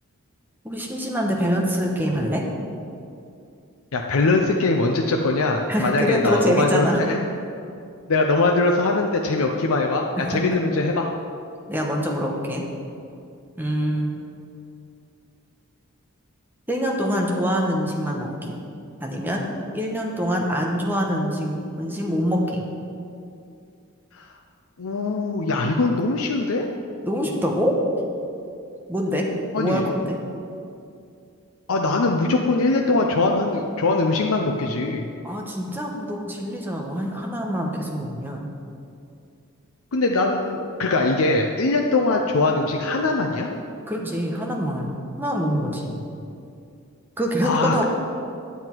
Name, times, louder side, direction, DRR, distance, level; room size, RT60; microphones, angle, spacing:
voice 1, 0.6-2.4 5.7-7.0 10.2-10.4 11.7-12.6 13.6-14.2 16.7-18.6 19.0-19.5 19.7-22.6 27.0-27.7 28.9-29.3 29.5-30.2 35.2-38.5 43.9-46.1 47.2-47.8, equal, 10° right, -1 dB, 1.0 m, -25 dB
voice 2, 3.9-7.2 8.1-11.1 24.1-24.3 24.8-26.7 29.5-29.8 31.7-35.1 39.9-43.5 47.4-47.8, left 3 dB, 65° left, 1 dB, 0.6 m, -22 dB
9.4 x 7.8 x 4.5 m, 2.5 s
head